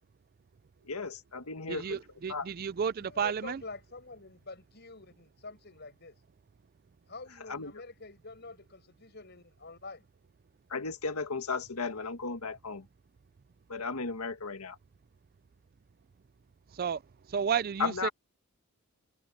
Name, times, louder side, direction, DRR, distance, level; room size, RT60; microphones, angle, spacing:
voice 1, 0.8-2.0 2.3-2.5 7.5-7.7 10.7-12.9 13.7-14.8 17.8-18.1, left 4 dB, 80° left, 1.6 m, -35 dB
voice 2, 1.7-3.6 16.8-17.0 17.3-18.1, right 7 dB, 40° right, 0.4 m, -32 dB
voice 3, 3.0-6.2 7.1-10.0, left 3 dB, 50° left, 7.2 m, -47 dB
head